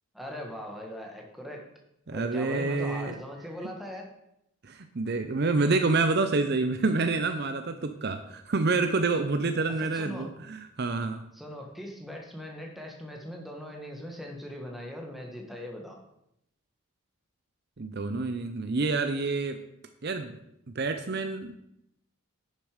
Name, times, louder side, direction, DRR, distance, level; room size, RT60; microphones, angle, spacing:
voice 1, 0.1-1.7 2.1-4.1 9.8-10.3 11.3-16.0, left 1 dB, ahead, 0 dB, 1.5 m, -40 dB
voice 2, 2.1-3.1 4.6-11.2 17.8-19.6 20.0-20.4 20.7-21.5, right 3 dB, 45° right, 8 dB, 0.6 m, -28 dB
10.5 x 6.8 x 5.0 m, 0.79 s
head